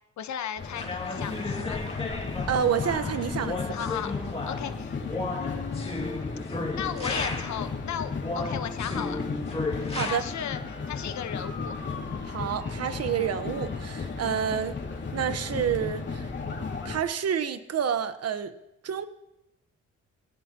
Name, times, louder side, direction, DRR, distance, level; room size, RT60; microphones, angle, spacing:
voice 1, 0.2-1.8 3.7-4.2 4.5-5.0 5.3-6.1 6.7-9.2 10.0-10.6 10.9-11.7, left 9 dB, 70° left, 9 dB, 1.2 m, -35 dB
sound 1, 0.6-17.0, left 4 dB, 40° left, 2.5 m, -34 dB
sound 2, 0.7-7.7 8.2-10.1, left 2 dB, 20° left, 2.5 m, -34 dB
voice 2, 2.5-3.6 9.9-10.2 12.3-14.8 15.1-16.3 16.8-18.5 18.8-19.1, right 8 dB, 55° right, 10 dB, 1.3 m, -28 dB
24.0 x 16.5 x 3.0 m, 0.90 s
cardioid pair, 90°, 30 cm